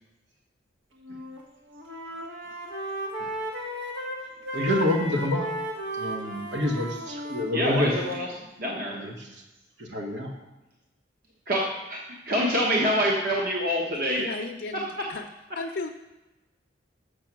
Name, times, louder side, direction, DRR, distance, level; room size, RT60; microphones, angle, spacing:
Wind instrument woodwind instrument, 1.0-1.4 1.7-8.3, equal, 85° right, 1.7 m, -35 dB
voice 1, 4.5-5.5 6.0-7.9 8.9-9.1 9.8-10.3, left 1 dB, 70° right, 1 dB, 1.4 m, -27 dB
voice 2, 7.5-9.0 11.5-14.3 14.7-15.1, equal, 50° right, -3 dB, 1.2 m, -26 dB
voice 3, 14.2-15.2 15.6-15.9, left 3 dB, 60° left, 2 dB, 0.5 m, -34 dB
6.8 x 6.7 x 6.0 m, 1.0 s
head